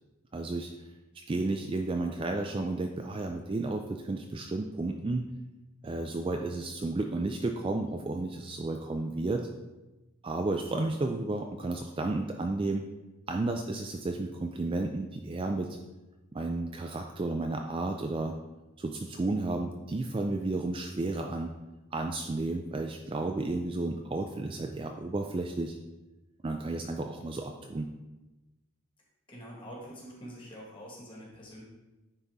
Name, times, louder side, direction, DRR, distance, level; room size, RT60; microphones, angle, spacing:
voice 1, 0.3-0.7 1.3-5.2 5.8-9.5 10.2-12.8 13.3-15.8 16.3-18.3 18.8-21.5 21.9-25.8 26.4-27.9, right 2 dB, 25° right, 3 dB, 0.3 m, -32 dB
voice 2, 29.3-31.6, equal, 20° left, -3 dB, 1.6 m, -45 dB
9.6 x 4.0 x 3.5 m, 1.1 s
head